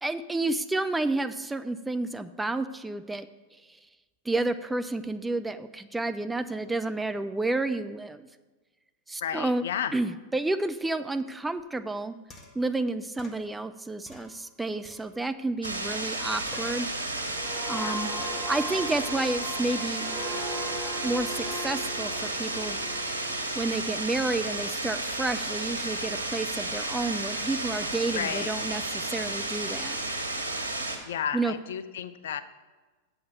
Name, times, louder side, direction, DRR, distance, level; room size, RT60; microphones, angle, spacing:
voice 1, 0.0-3.3 4.3-8.3 9.1-9.6 9.9-12.1 12.6-16.9 17.6-18.1 18.5-20.1 21.0-22.8 23.5-30.0 31.3-31.5, right 2 dB, 10° right, 10 dB, 0.4 m, -30 dB
voice 2, 9.2-9.9 17.7-18.0 18.3-18.6 28.1-28.5 31.1-32.4, left 9 dB, 60° left, 13 dB, 0.4 m, -33 dB
sound 1, 11.6-11.7 12.3-12.7 13.2-13.4 14.1-15.3 15.6-16.2 16.5-16.9 17.2-17.6 18.1-18.5, left 2 dB, 25° left, 1.3 m, -49 dB
sound 2, 15.6-31.0, right 2 dB, 85° left, 1.6 m, -32 dB
sound 3, 17.3-24.7 25.1-25.4, right 1 dB, 35° right, 2.8 m, -39 dB
7.7 x 5.7 x 6.7 m, 1.3 s
figure-of-eight pair, 90°, 0 cm